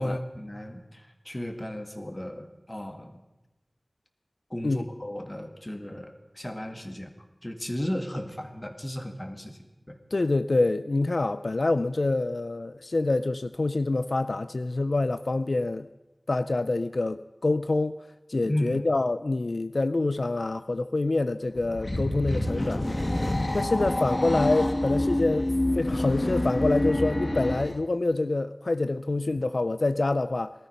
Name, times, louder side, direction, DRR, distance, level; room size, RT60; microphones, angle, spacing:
voice 1, 0.0-3.2 4.5-7.1 7.4-9.6 9.9-10.0 18.5-18.8, left 1 dB, 30° left, 2.2 m, -34 dB
voice 2, 10.1-15.9 16.3-18.0 18.3-22.9 23.5-30.5, left 2 dB, 85° left, 0.4 m, -26 dB
sound 1, 21.5-27.8, left 1 dB, 50° left, 1.4 m, -27 dB
19.0 x 13.5 x 5.7 m
wide cardioid pair, 45°, 0 cm